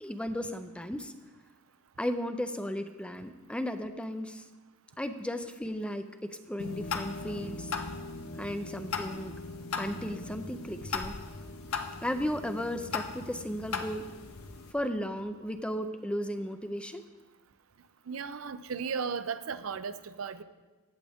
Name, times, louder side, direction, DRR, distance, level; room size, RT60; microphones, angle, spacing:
voice 1, 0.0-1.1 2.0-4.4 5.0-6.0 6.3-7.7 8.4-9.3 9.8-11.1 12.0-14.0 14.7-17.0, equal, 5° left, 8 dB, 0.5 m, -35 dB
sound 1, 6.6-14.7, left 4 dB, 85° left, 0.8 m, -38 dB
voice 2, 18.1-20.4, right 6 dB, 75° right, 12 dB, 0.5 m, -35 dB
16.5 x 7.5 x 3.5 m, 1.2 s
head